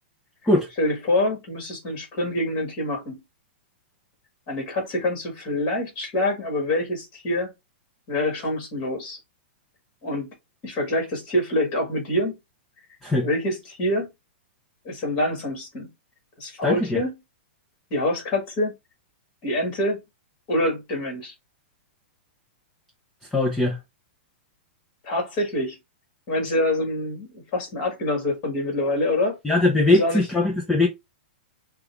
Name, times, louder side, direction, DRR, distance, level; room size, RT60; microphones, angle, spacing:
voice 1, 0.8-3.2 4.5-7.5 8.1-9.2 10.0-10.3 10.6-12.4 13.2-14.1 14.9-15.9 16.4-17.2 17.9-18.7 19.4-20.0 20.5-21.3 25.0-25.8 26.3-29.4 29.9-30.3, left 1 dB, 25° left, 1.7 m, -26 dB
voice 2, 16.6-17.0 23.3-23.8 29.4-30.9, left 2 dB, 5° left, 0.5 m, -20 dB
5.4 x 2.3 x 3.2 m
hypercardioid pair, 175°, 6 cm